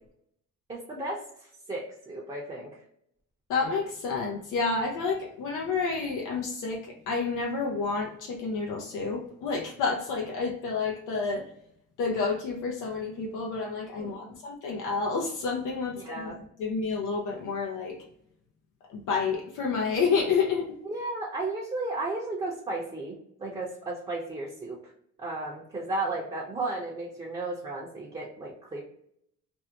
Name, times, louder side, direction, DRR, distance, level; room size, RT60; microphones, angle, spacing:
voice 1, 0.7-2.8 13.9-14.3 15.9-16.4 20.8-23.1 23.4-24.8 25.2-28.8, right 2 dB, 20° right, -3 dB, 0.6 m, -34 dB
voice 2, 3.5-11.5 12.0-18.0 18.9-20.7, left 4 dB, 85° left, 0 dB, 0.5 m, -29 dB
2.6 x 2.1 x 2.7 m, 0.72 s
cardioid pair, 90°, 30 cm